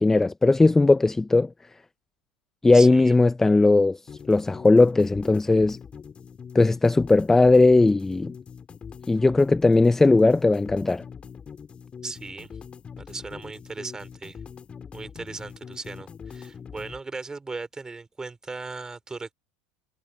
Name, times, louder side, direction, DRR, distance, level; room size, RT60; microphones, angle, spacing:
voice 1, 0.0-1.5 2.6-4.0 4.3-5.8 6.5-8.3 9.1-11.0, left 3 dB, 10° left, 0.4 m, -18 dB
voice 2, 2.7-3.2 12.0-12.5 13.0-14.4 14.9-19.3, right 3 dB, 15° right, 3.5 m, -37 dB
sound 1, 4.1-17.0, left 6 dB, 25° left, 4.7 m, -43 dB
supercardioid pair, 115°, 4 cm